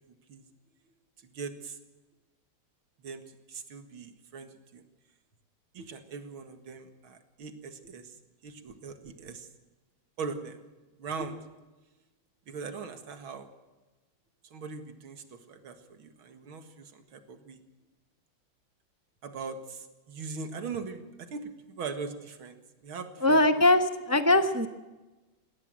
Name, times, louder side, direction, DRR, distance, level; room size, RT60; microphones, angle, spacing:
voice 1, 1.2-1.8 3.0-3.2 3.5-4.8 5.7-8.1 8.4-9.5 10.2-10.6 11.0-11.4 12.5-13.5 14.5-17.6 19.2-22.6 22.8-23.6, right 5 dB, 85° right, 8 dB, 2.6 m, -40 dB
voice 2, 23.2-24.7, left 2 dB, 25° right, 9 dB, 0.3 m, -22 dB
21.0 x 17.0 x 7.7 m, 1.1 s
omnidirectional pair, 2.2 m